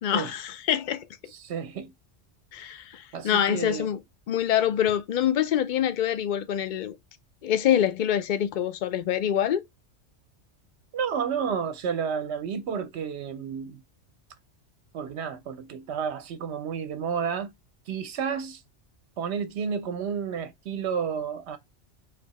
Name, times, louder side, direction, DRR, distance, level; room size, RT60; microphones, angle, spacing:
voice 1, 0.0-1.1 2.5-4.0 4.3-7.0 7.4-9.6, left 10 dB, 55° left, 0.5 m, -25 dB
voice 2, 1.3-1.9 3.1-3.9 10.9-13.8 14.9-17.5 17.9-18.6 19.2-21.6, right 7 dB, 70° right, 1.0 m, -31 dB
3.9 x 2.7 x 4.0 m
omnidirectional pair, 1.2 m